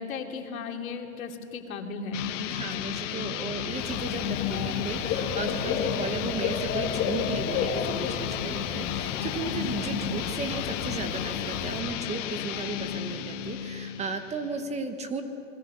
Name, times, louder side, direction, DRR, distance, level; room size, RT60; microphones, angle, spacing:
voice 1, 0.0-2.2 2.7-2.9 9.4-9.7, left 4 dB, 75° left, 3 dB, 2.9 m, -36 dB
sound 1, 2.1-14.6, left 11 dB, 60° left, 1.6 m, -33 dB
voice 2, 2.5-15.2, right 4 dB, 15° right, 7 dB, 1.2 m, -35 dB
Dog / Bird, 3.8-11.8, left 6 dB, 30° left, 2.2 m, -32 dB
27.5 x 21.5 x 6.8 m, 2.9 s
supercardioid pair, 145°, 42 cm